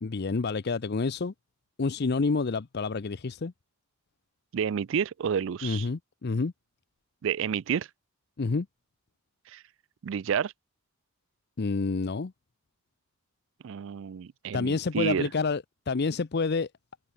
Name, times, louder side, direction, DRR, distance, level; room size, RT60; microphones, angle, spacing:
voice 1, 0.0-1.3 1.8-3.5 5.6-6.5 8.4-8.7 11.6-12.3 14.5-16.7, left 4 dB, 50° left, 0.6 m, -28 dB
voice 2, 4.5-5.9 7.2-7.9 9.5-9.6 10.0-10.5 13.6-15.3, right 7 dB, 60° right, 0.4 m, -30 dB
head